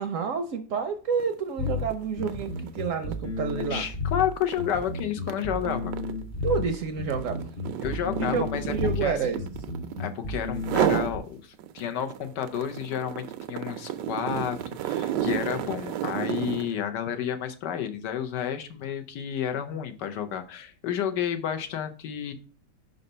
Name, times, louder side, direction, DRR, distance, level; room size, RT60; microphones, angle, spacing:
voice 1, 0.0-3.8 6.4-7.5 8.2-9.4, right 6 dB, 65° right, 8 dB, 0.8 m, -29 dB
sound 1, 1.1-1.3 1.7-10.1 10.6-11.2 11.6-16.8, right 11 dB, 85° right, 1.2 m, -32 dB
sound 2, 1.6-11.2, left 3 dB, 40° left, 0.9 m, -32 dB
voice 2, 3.6-5.9 7.8-8.7 9.0-9.2 10.0-22.3, left 9 dB, 80° left, 8 dB, 1.4 m, -31 dB
5.4 x 4.0 x 5.3 m, 0.38 s
omnidirectional pair, 1.8 m